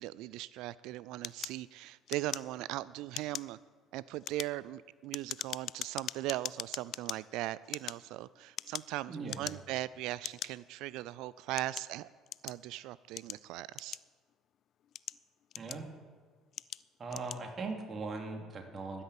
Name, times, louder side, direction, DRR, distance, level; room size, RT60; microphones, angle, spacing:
voice 1, 0.0-3.6 3.9-12.1 12.4-14.0, right 16 dB, 65° right, 19 dB, 0.3 m, -39 dB
sound 1, 1.2-2.8 3.1-3.6 4.1-7.2 7.6-9.0 9.3-9.8 10.2-10.5 11.2-12.6 13.2-14.3 14.8-16.0 16.5-16.8 17.1-17.4, left 10 dB, 55° left, 0.4 m, -41 dB
voice 2, 9.1-9.6 15.6-15.9 17.0-19.0, right 3 dB, 40° right, 3 dB, 2.9 m, -40 dB
13.0 x 10.0 x 8.7 m, 1.5 s
hypercardioid pair, 55°, 0 cm